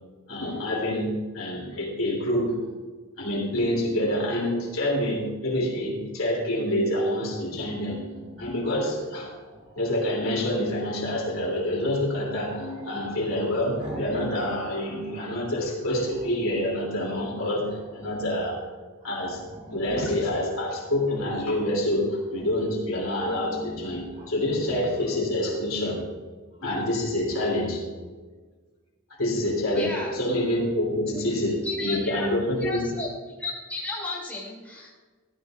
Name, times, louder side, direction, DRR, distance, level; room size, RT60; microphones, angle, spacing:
voice 1, 0.3-2.6 3.2-8.1 8.4-9.3 9.8-17.7 17.9-18.6 19.0-19.4 19.7-26.0 26.6-27.8 29.2-32.9, left 1 dB, 75° left, -2 dB, 3.0 m, -27 dB
Growling, 8.1-10.1 12.5-14.3 14.6-15.5 16.1-17.0 17.4-18.4 18.7-18.8 19.0-20.3 20.8-21.6 22.3-22.7 23.1-24.3 24.6-24.9, equal, 30° right, 2.4 m, -44 dB
voice 2, 29.7-30.1 31.6-32.3 32.6-33.1 33.4-35.0, left 3 dB, 5° left, -5 dB, 2.8 m, -33 dB
13.5 x 13.0 x 2.5 m, 1.4 s
head